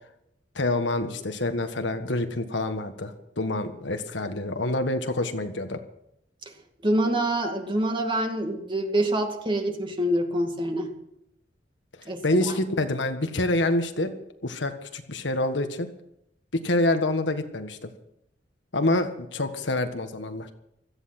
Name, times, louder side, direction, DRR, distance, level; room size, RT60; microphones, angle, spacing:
voice 1, 0.5-5.8 12.2-14.1 14.4-15.9 16.5-17.9 18.7-20.5, left 2 dB, 75° left, 7 dB, 1.6 m, -27 dB
voice 2, 6.8-10.9 12.1-12.4, right 1 dB, 25° right, 4 dB, 2.2 m, -26 dB
16.5 x 14.0 x 6.0 m, 0.78 s
head